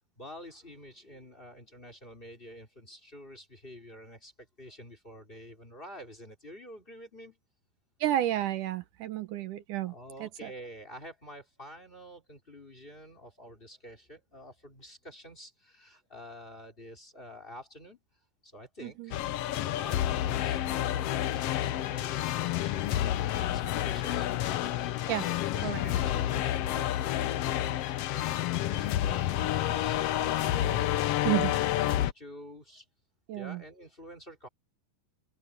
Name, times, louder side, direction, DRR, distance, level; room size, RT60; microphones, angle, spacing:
voice 1, 0.2-7.4 9.9-18.0 18.4-19.2 19.7-23.1 23.5-24.3 25.0-27.6 27.9-29.3 29.6-31.3 31.7-32.9 33.4-34.5, equal, 15° left, 3.5 m, -48 dB
voice 2, 8.0-9.9 10.2-10.5 18.8-19.1 25.1-25.2 25.6-25.8 31.3-31.6 33.3-33.6, right 13 dB, 75° right, 2.4 m, -31 dB
sound 1, 19.1-32.1, left 13 dB, 90° left, 1.3 m, -29 dB
open air
omnidirectional pair, 3.8 m